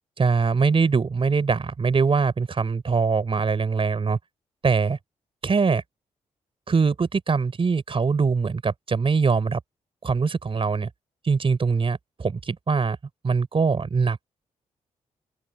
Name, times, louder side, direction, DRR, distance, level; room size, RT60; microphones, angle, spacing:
voice 1, 0.2-4.2 4.6-5.0 5.4-5.8 6.7-9.6 10.0-10.9 11.2-13.0 13.2-14.3, right 5 dB, 45° right, 3.8 m, -22 dB
open air
cardioid pair, 65°, 13 cm